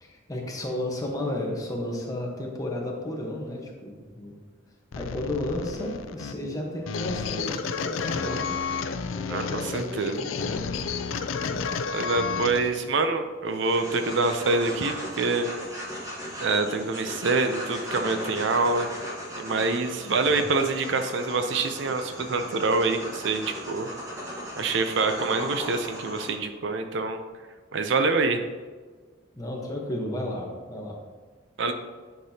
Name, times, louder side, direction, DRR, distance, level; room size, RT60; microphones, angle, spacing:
voice 1, 0.0-4.3 4.9-8.5 9.1-10.8 11.3-12.1 20.0-20.5 29.4-31.0, left 1 dB, 20° left, 0 dB, 1.1 m, -33 dB
sound 1, 4.9-12.9, left 5 dB, 85° left, 0.4 m, -31 dB
voice 2, 9.3-10.2 11.9-15.5 16.4-18.9 19.4-23.9 24.6-27.2 27.7-28.4 31.6-31.7, right 3 dB, 65° right, 7 dB, 0.5 m, -26 dB
sound 2, 13.5-26.3, equal, 15° right, 1.3 m, -37 dB
9.3 x 6.0 x 2.8 m, 1.4 s
head